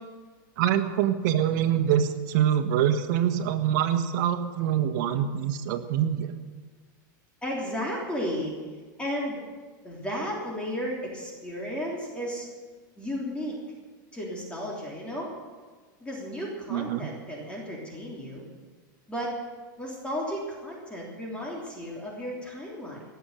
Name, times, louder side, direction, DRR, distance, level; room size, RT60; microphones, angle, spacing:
voice 1, 0.6-6.3 16.7-17.1, right 10 dB, 65° right, 9 dB, 1.4 m, -25 dB
voice 2, 7.4-8.5 9.0-9.4 9.8-12.5 13.0-13.6 14.1-15.3 16.0-18.4 19.1-19.4 19.8-23.0, equal, 10° left, -3 dB, 3.3 m, -33 dB
18.0 x 7.2 x 9.0 m, 1.4 s
supercardioid pair, 130°, 11 cm